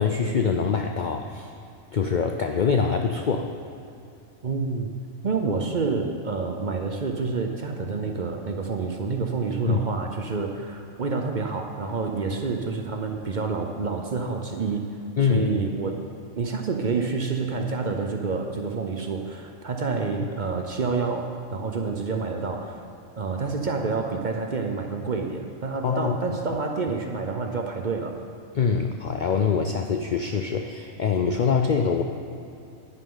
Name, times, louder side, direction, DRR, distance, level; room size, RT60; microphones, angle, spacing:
voice 1, 0.0-1.5 1.9-3.5 9.7-9.8 15.2-15.5 20.2-20.3 25.8-26.4 28.5-32.0, left 6 dB, 60° left, 4 dB, 0.5 m, -24 dB
voice 2, 4.4-4.9 5.2-14.9 15.2-16.0 16.4-22.9 23.2-28.2, right 4 dB, 45° right, 3 dB, 0.7 m, -28 dB
10.5 x 10.0 x 3.9 m, 2.7 s
omnidirectional pair, 1.3 m